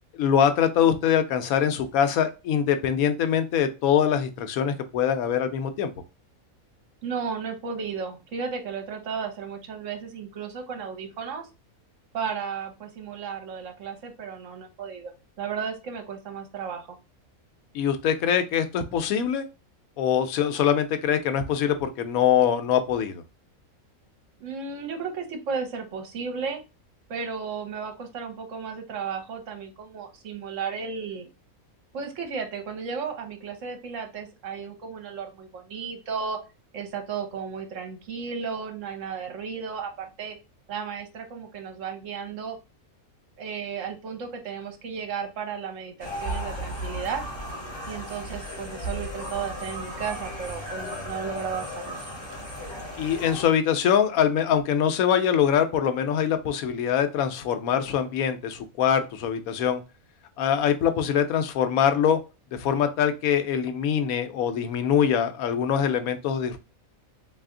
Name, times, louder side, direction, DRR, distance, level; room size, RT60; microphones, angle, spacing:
voice 1, 0.1-5.9 17.7-19.5 20.0-23.2 53.0-59.8 60.4-62.2 62.5-66.6, left 8 dB, 80° left, 8 dB, 1.0 m, -23 dB
voice 2, 7.0-11.5 12.1-15.1 15.4-17.0 24.4-26.6 27.1-31.3 31.9-36.4 36.7-40.4 40.7-42.6 43.4-47.2 47.8-52.0, right 6 dB, 65° right, 5 dB, 1.1 m, -34 dB
sound 1, 46.0-53.4, equal, 20° left, 1.4 m, -35 dB
3.3 x 2.7 x 3.6 m, 0.28 s
omnidirectional pair, 1.5 m